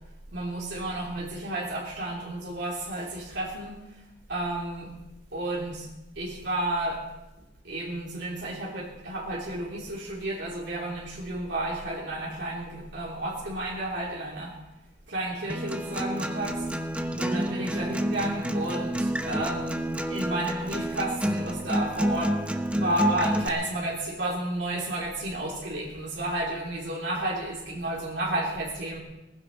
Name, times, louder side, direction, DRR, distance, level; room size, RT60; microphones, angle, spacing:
voice 1, 0.3-3.8 4.3-4.9 5.3-5.9 6.1-7.0 7.6-14.5 15.1-16.7 17.2-19.8 20.1-22.3 22.7-29.0, right 1 dB, 80° right, -4 dB, 3.2 m, -31 dB
Acoustic guitar, 15.5-23.5, right 1 dB, 5° right, 0.9 m, -29 dB
19.0 x 15.5 x 4.1 m, 0.97 s
head